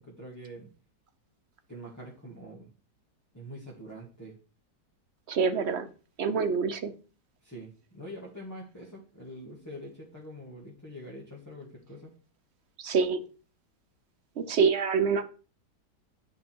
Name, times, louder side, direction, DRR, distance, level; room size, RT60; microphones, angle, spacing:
voice 1, 0.1-0.7 1.7-2.7 3.3-4.3 7.4-12.1, equal, 10° left, -4 dB, 2.1 m, -44 dB
voice 2, 5.3-5.9 6.2-6.9 12.8-13.2 14.4-15.2, right 5 dB, 50° right, 10 dB, 0.9 m, -26 dB
10.5 x 5.6 x 4.6 m, 0.36 s
omnidirectional pair, 1.9 m